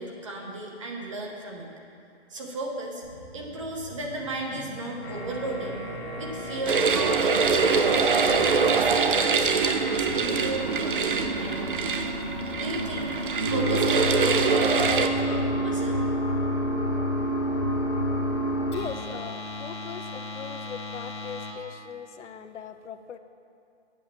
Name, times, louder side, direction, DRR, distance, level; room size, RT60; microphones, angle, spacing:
voice 1, 0.0-1.7 2.3-3.0 3.3-5.8 6.2-8.0 8.5-12.0 12.6-13.1 13.4-16.0, right 1 dB, 25° right, 0 dB, 0.9 m, -35 dB
sound 1, 3.0-12.7 12.9-13.2, right 2 dB, 85° right, 1.7 m, -46 dB
sound 2, 5.0-21.5, equal, 25° left, 0.8 m, -31 dB
sound 3, 6.7-15.1, right 5 dB, 50° right, 0.5 m, -24 dB
voice 2, 18.7-23.2, left 7 dB, 85° left, 9 dB, 0.7 m, -39 dB
8.4 x 7.3 x 5.8 m, 2.6 s
hypercardioid pair, 170°, 35 cm